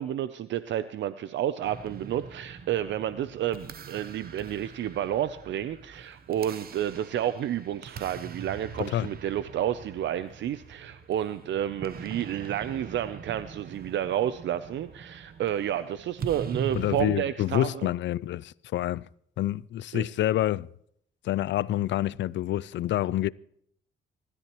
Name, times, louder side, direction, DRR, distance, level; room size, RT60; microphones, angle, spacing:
voice 1, 0.0-17.9 19.9-20.0, right 11 dB, 70° right, 0.6 m, -30 dB
sound 1, 1.6-17.1, right 6 dB, 50° right, 1.0 m, -42 dB
voice 2, 16.7-19.1 19.4-20.7 21.2-23.3, left 13 dB, 65° left, 0.5 m, -27 dB
25.5 x 13.5 x 3.1 m
cardioid pair, 90°, 20 cm